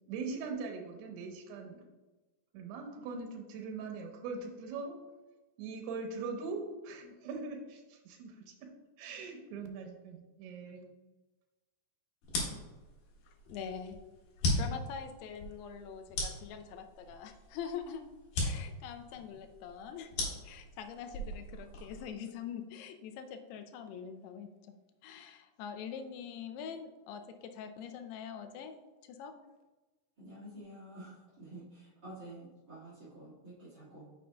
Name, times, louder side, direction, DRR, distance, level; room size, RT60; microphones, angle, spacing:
voice 1, 0.1-1.8 2.5-5.0 5.6-8.5 9.0-10.9, right 4 dB, 80° right, 2 dB, 3.0 m, -41 dB
sound 1, 12.2-22.1, left 2 dB, 60° left, 3.0 m, -38 dB
voice 2, 13.3-14.0 14.5-18.0 18.4-24.7 25.0-28.8 29.0-29.3, left 7 dB, 85° left, 8 dB, 2.6 m, -44 dB
voice 3, 30.2-34.2, right 1 dB, 40° right, -11 dB, 1.8 m, -50 dB
9.4 x 6.3 x 2.3 m, 1.2 s
omnidirectional pair, 4.7 m